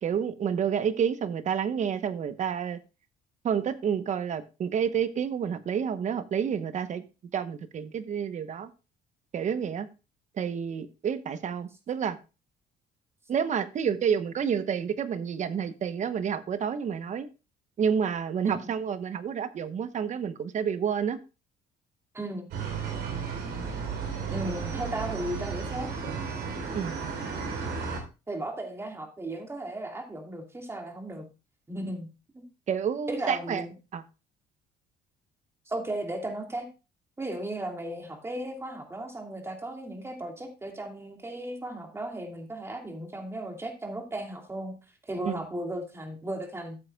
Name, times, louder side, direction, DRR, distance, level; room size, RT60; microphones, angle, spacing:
voice 1, 0.0-2.8 3.4-7.0 7.3-8.7 9.3-9.9 10.4-12.2 13.3-17.3 17.8-21.2 26.7-26.9 32.7-33.6 33.9-34.0 45.2-45.4, right 7 dB, 45° right, 1.0 m, -29 dB
voice 2, 22.1-22.5 24.3-25.9 28.3-31.3 31.7-32.1 32.3-32.4 33.1-33.7 35.7-36.7 37.2-44.7 45.0-46.8, right 1 dB, 15° right, 2.5 m, -35 dB
sound 1, 22.5-28.0, right 5 dB, 75° right, 3.7 m, -33 dB
14.5 x 7.7 x 2.3 m
cardioid pair, 110°, 17 cm